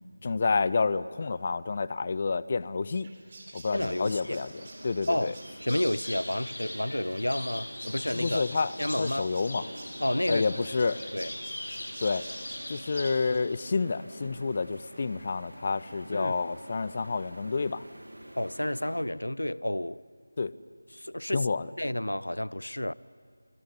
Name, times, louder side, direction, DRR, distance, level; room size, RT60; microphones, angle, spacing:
voice 1, 0.2-3.1 3.5-4.5 4.8-5.3 8.1-8.7 9.0-9.7 10.3-11.0 12.0-12.3 12.7-17.8 20.4-20.6 21.3-21.7, left 4 dB, 30° left, 0.6 m, -29 dB
sound 1, 3.0-13.4, right 2 dB, 25° right, 3.7 m, -51 dB
voice 2, 3.7-4.4 5.1-5.3 5.6-8.4 8.8-9.3 10.0-10.5 10.9-11.3 16.1-16.3 18.4-20.0 20.9-21.5 21.8-22.9, left 1 dB, 70° left, 0.6 m, -30 dB
sound 2, 3.9-19.0, right 1 dB, 70° right, 2.8 m, -48 dB
sound 3, 5.7-13.4, left 1 dB, 45° left, 5.5 m, -40 dB
26.5 x 20.5 x 9.8 m
figure-of-eight pair, 165°, 0 cm